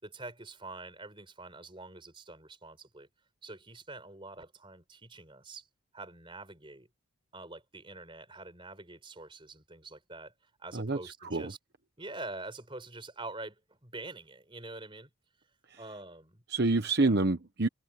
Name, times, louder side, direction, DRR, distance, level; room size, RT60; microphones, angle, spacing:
voice 1, 0.0-3.1 3.4-5.7 5.9-6.9 7.3-10.3 10.6-11.6 12.0-15.1 15.8-16.4 17.0-17.1, right 2 dB, 25° right, 4.6 m, -45 dB
voice 2, 10.7-11.5 15.7-15.8 16.5-17.7, right 3 dB, 50° right, 1.1 m, -28 dB
head